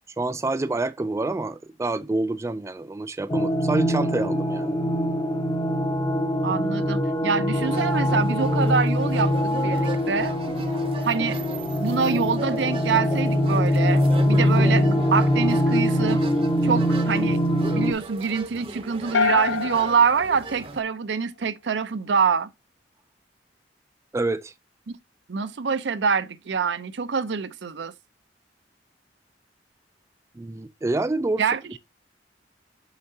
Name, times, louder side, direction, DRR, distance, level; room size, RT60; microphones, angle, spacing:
voice 1, 0.2-4.8 14.3-14.4 24.1-24.5 30.4-31.4, right 2 dB, 15° right, 0.3 m, -27 dB
sound 1, 3.3-17.9, equal, 25° left, 0.7 m, -23 dB
voice 2, 6.4-10.3 11.0-11.4 11.8-16.2 16.6-17.4 17.7-22.5 24.9-25.0 25.3-27.9 31.4-31.8, right 5 dB, 75° right, 0.5 m, -25 dB
sound 2, 7.5-20.8, right 2 dB, 30° right, 0.7 m, -37 dB
sound 3, 19.1-21.4, left 5 dB, 70° left, 0.5 m, -27 dB
6.4 x 5.8 x 2.7 m
head